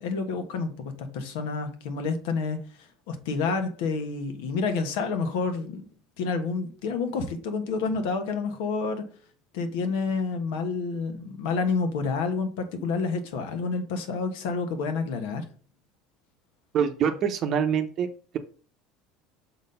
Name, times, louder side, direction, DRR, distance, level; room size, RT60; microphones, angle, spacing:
voice 1, 0.0-5.8 6.2-9.1 9.5-15.5, left 4 dB, 80° left, 1.4 m, -29 dB
voice 2, 16.7-18.1, right 7 dB, 40° right, 0.7 m, -25 dB
6.1 x 4.2 x 5.4 m
cardioid pair, 155°, 0 cm